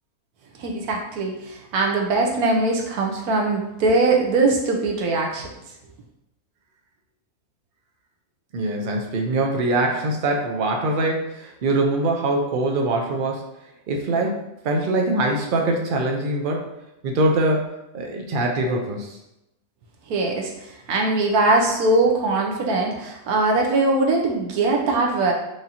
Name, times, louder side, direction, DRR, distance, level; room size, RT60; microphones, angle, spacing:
voice 1, 0.6-5.4 20.1-25.3, right 2 dB, 80° right, 0 dB, 1.2 m, -21 dB
voice 2, 8.5-13.4 13.9-16.6 17.0-17.7 17.9-19.2, right 2 dB, 60° right, 1 dB, 0.5 m, -23 dB
4.8 x 2.6 x 2.8 m, 0.88 s
omnidirectional pair, 1.6 m